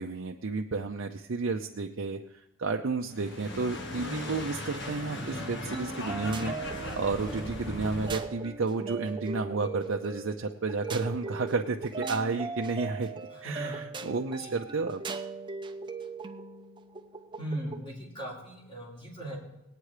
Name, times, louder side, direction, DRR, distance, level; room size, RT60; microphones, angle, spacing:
voice 1, 0.0-2.2 2.6-6.5 7.0-13.1 13.4-15.0, right 3 dB, 65° right, 3 dB, 0.6 m, -31 dB
sound 1, 3.1-8.3, left 1 dB, 55° left, 1.8 m, -37 dB
voice 2, 5.1-5.4 13.3-13.8 14.4-14.6 17.4-19.4, right 1 dB, 25° left, -4 dB, 3.4 m, -38 dB
sound 2, 5.7-17.9, right 4 dB, 20° right, 0.6 m, -39 dB
19.5 x 9.1 x 4.9 m, 0.89 s
head